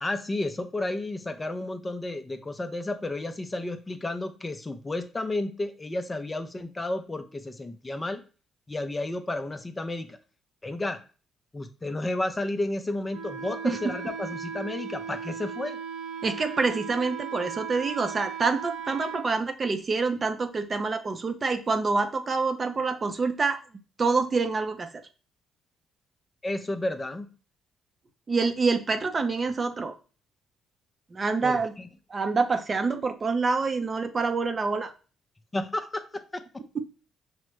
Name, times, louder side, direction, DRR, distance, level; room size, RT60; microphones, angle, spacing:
voice 1, 0.0-8.2 8.7-10.2 10.6-11.0 11.5-15.8 26.4-27.3 31.4-31.9 35.5-36.6, left 2 dB, 20° left, 8 dB, 0.5 m, -32 dB
Wind instrument woodwind instrument, 13.1-19.3, right 7 dB, 80° right, 0.9 m, -37 dB
voice 2, 16.2-23.6 24.0-24.9 28.3-29.9 31.1-31.7 32.1-34.9 36.7-36.9, right 4 dB, 35° right, 8 dB, 0.5 m, -26 dB
5.6 x 2.0 x 3.1 m, 0.35 s
cardioid pair, 90°, 0 cm